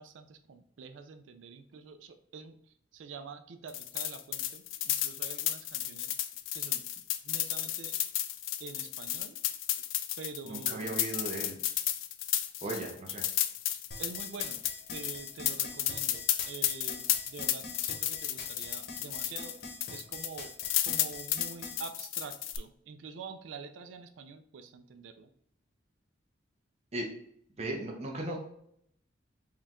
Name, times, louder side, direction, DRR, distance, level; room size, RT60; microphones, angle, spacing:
voice 1, 0.0-6.2 6.5-8.0 8.6-9.4 9.8-9.9 10.2-11.0 12.6-12.8 13.7-20.5 20.8-25.3, right 5 dB, 80° right, 8 dB, 0.4 m, -47 dB
sound 1, 3.7-19.6 19.8-22.6, left 12 dB, 85° left, 0.4 m, -33 dB
voice 2, 10.5-11.6 12.6-13.2 26.9-27.1 27.6-28.4, right 2 dB, 35° right, 0 dB, 0.7 m, -36 dB
sound 2, 13.9-21.8, left 3 dB, 55° left, 0.9 m, -44 dB
4.4 x 2.3 x 3.6 m, 0.69 s
head